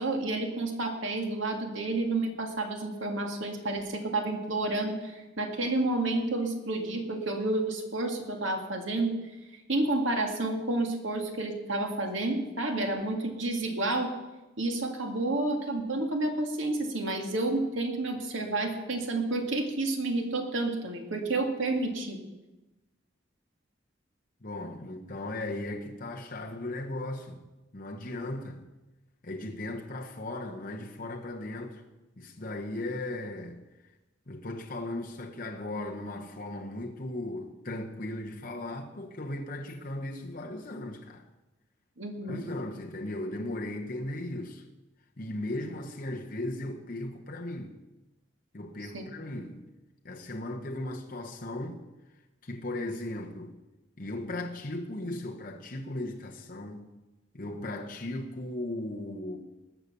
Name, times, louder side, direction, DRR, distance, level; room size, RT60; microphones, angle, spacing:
voice 1, 0.0-9.2 9.7-14.1 14.6-22.2 42.0-42.4 48.9-49.0, right 2 dB, 80° right, 2.1 m, -30 dB
voice 2, 24.4-27.4 27.7-28.6 29.2-31.8 32.2-33.6 34.3-41.2 42.3-44.6 45.2-47.8 48.5-49.6 50.0-51.8 52.4-53.5 54.0-56.9 57.3-59.4, left 1 dB, 45° left, 1.1 m, -37 dB
20.0 x 6.8 x 7.0 m
head